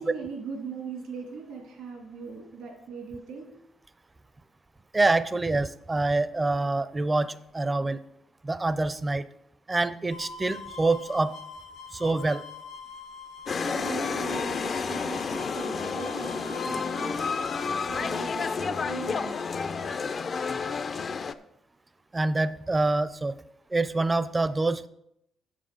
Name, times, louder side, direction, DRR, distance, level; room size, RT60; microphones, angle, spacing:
voice 1, 0.0-3.5 13.6-17.3 17.9-19.5, right 4 dB, 85° right, 2 dB, 2.0 m, -39 dB
voice 2, 4.9-8.0 8.4-9.3 9.7-11.4 11.9-12.4 22.1-23.4 23.7-24.9, right 2 dB, 20° right, 15 dB, 0.5 m, -26 dB
sound 1, 10.1-17.8, left 5 dB, 85° left, 1.0 m, -43 dB
sound 2, 13.5-21.3, left 5 dB, 45° left, 0.5 m, -30 dB
7.6 x 7.2 x 5.7 m, 0.78 s
cardioid pair, 90°, 0 cm